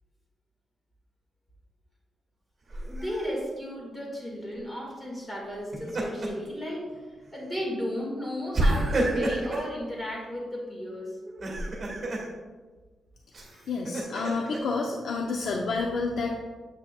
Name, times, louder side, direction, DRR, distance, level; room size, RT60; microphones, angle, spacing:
voice 1, 2.7-6.9 7.3-11.1, equal, 15° left, -3 dB, 2.0 m, -34 dB
Laughter, 2.7-3.3 5.5-6.5 6.9-7.1 8.5-9.7 11.2-12.3 13.3-14.6, right 1 dB, 35° right, 2.0 m, -29 dB
voice 2, 13.7-16.4, left 3 dB, 70° left, 0 dB, 0.6 m, -29 dB
8.2 x 5.9 x 2.4 m, 1.3 s
cardioid pair, 110°, 0 cm